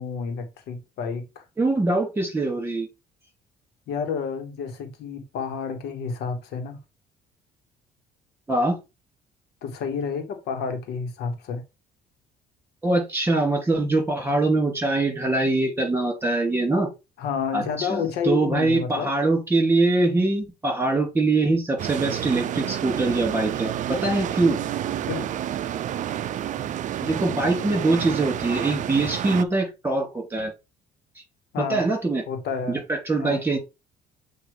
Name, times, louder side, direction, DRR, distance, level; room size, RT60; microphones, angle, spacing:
voice 1, 0.0-1.4 3.9-6.8 9.6-11.6 17.2-19.1 25.1-25.3 31.5-31.8 32.3-32.8 33.2-33.4, left 6 dB, 75° left, 1.3 m, -30 dB
voice 2, 1.6-2.9 8.5-8.8 12.8-16.9 17.5-24.6 27.0-30.5 31.7-32.2 32.7-33.6, right 2 dB, 15° right, 2.7 m, -23 dB
sound 1, 21.8-29.4, right 11 dB, 50° right, 0.4 m, -29 dB
7.7 x 2.6 x 4.8 m
cardioid pair, 110°, 17 cm